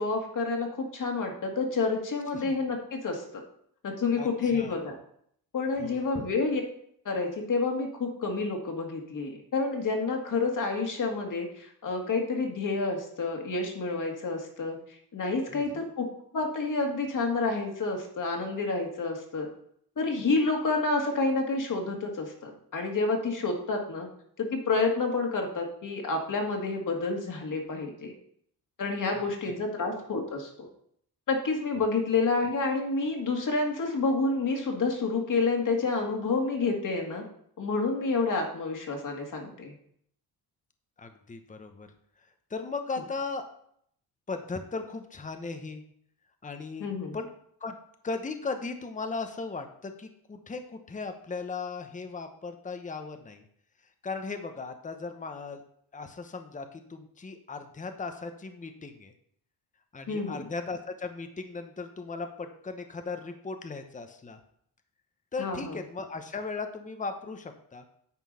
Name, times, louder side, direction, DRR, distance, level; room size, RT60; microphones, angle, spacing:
voice 1, 0.0-3.4 3.8-4.9 5.5-6.6 7.1-14.8 15.1-19.5 20.0-24.1 24.4-28.1 28.8-30.7 31.3-37.2 37.6-39.7 46.8-47.2 60.1-60.5 65.4-65.7, left 3 dB, 50° left, 2 dB, 2.1 m, -29 dB
voice 2, 4.2-4.8 5.8-6.1 15.5-15.8 29.1-29.5 31.8-31.9 41.0-41.9 42.5-43.5 44.3-45.8 46.4-46.9 47.1-47.3 47.6-47.8 48.0-53.4 54.0-55.6 55.9-59.1 59.9-64.4 65.3-67.8, left 4 dB, 20° left, 7 dB, 0.9 m, -37 dB
9.5 x 4.5 x 5.5 m, 0.67 s
cardioid pair, 105°, 41 cm